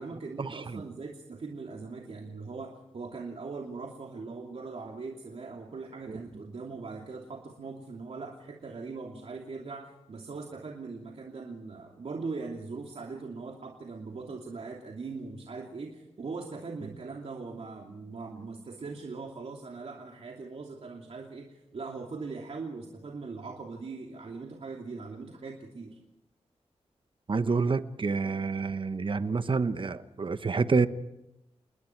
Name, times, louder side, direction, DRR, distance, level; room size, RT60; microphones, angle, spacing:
voice 1, 0.0-26.0, right 4 dB, 65° right, 0 dB, 2.9 m, -40 dB
voice 2, 27.3-30.9, right 4 dB, 50° right, 11 dB, 1.1 m, -28 dB
29.0 x 20.5 x 4.7 m, 0.91 s
cardioid pair, 65°, 11 cm